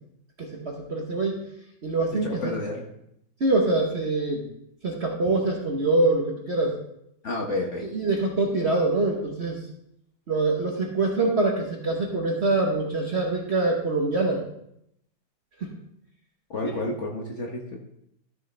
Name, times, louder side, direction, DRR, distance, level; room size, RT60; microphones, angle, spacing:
voice 1, 0.4-1.4 1.8-2.5 3.4-4.4 4.8-6.8 7.8-9.6 10.3-14.4 15.6-15.7 16.6-16.7, right 2 dB, 40° right, 0 dB, 1.1 m, -24 dB
voice 2, 2.2-2.8 7.2-7.9 16.5-17.8, left 2 dB, 45° left, -1 dB, 1.2 m, -30 dB
13.0 x 6.4 x 3.3 m, 0.77 s
omnidirectional pair, 2.1 m